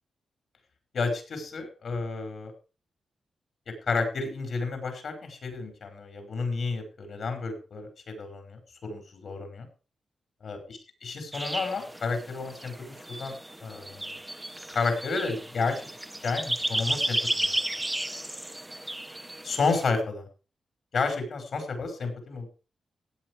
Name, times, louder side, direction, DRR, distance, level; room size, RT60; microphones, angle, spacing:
voice 1, 0.9-2.5 3.9-9.7 10.4-10.6 11.0-13.3 13.6-14.1 14.7-15.9 16.2-17.5 19.4-20.3 20.9-22.5, left 4 dB, 65° left, 5 dB, 5.3 m, -31 dB
sound 1, 11.3-19.8, right 1 dB, 10° right, 0.9 m, -33 dB
16.0 x 9.1 x 4.8 m, 0.34 s
cardioid pair, 100°, 0 cm